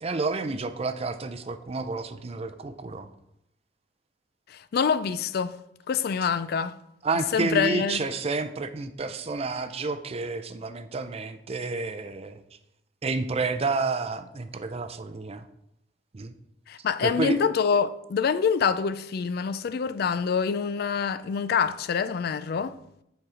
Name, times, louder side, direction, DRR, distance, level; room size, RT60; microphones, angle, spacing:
voice 1, 0.0-3.1 7.0-12.4 13.0-15.5 16.1-16.3 17.0-17.4, right 3 dB, 35° right, 0.5 m, -30 dB
voice 2, 4.5-5.6 5.9-6.8 7.3-8.0 16.7-22.8, left 6 dB, 55° left, 0.3 m, -26 dB
7.3 x 4.6 x 4.9 m
head